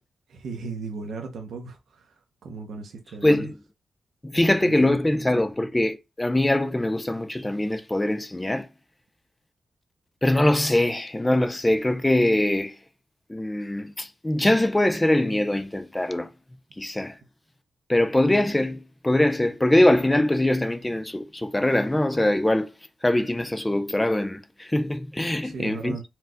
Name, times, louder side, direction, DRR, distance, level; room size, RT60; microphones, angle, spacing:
voice 1, 0.3-3.5 4.6-5.0 25.4-26.0, right 4 dB, 85° right, 0.8 m, -37 dB
voice 2, 3.2-3.6 4.2-8.7 10.2-12.8 13.3-16.3 16.8-17.2 17.9-22.7 23.0-26.0, left 1 dB, 10° left, 0.5 m, -22 dB
4.4 x 2.3 x 3.7 m
wide cardioid pair, 165°, 0 cm